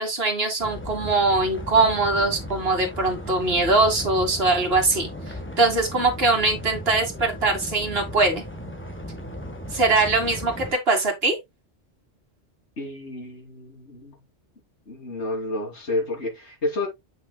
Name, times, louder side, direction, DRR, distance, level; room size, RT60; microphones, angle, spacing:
voice 1, 0.0-5.1 5.6-8.4 9.7-11.4, right 3 dB, 60° right, 2.3 m, -22 dB
sound 1, 0.6-10.7, equal, 10° left, 1.2 m, -36 dB
voice 2, 12.8-14.2 14.9-16.9, left 2 dB, 75° left, 3.2 m, -30 dB
8.4 x 6.1 x 2.3 m
omnidirectional pair, 1.2 m